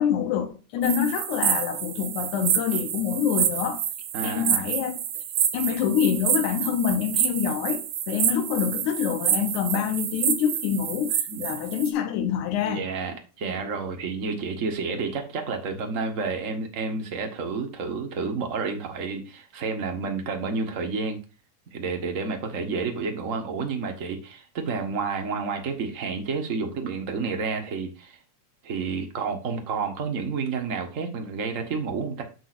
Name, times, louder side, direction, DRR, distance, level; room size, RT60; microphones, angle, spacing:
voice 1, 0.0-3.8 4.2-5.0 5.5-12.8, left 8 dB, 75° left, 2.3 m, -26 dB
sound 1, 0.8-11.9, right 10 dB, 70° right, 2.0 m, -28 dB
voice 2, 4.1-4.7 11.3-11.6 12.6-21.2 21.7-28.2 28.6-32.2, right 4 dB, 45° right, 1.0 m, -30 dB
9.2 x 6.3 x 2.6 m
omnidirectional pair, 3.5 m